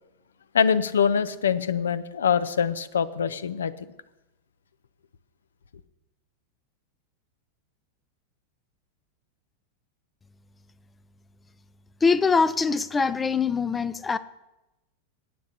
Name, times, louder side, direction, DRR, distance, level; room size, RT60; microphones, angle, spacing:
voice 1, 0.5-3.9, left 7 dB, 65° left, 16 dB, 0.5 m, -24 dB
voice 2, 12.0-14.2, left 5 dB, 15° left, 16 dB, 0.4 m, -23 dB
19.5 x 9.3 x 2.9 m, 0.98 s
figure-of-eight pair, 90°, 0 cm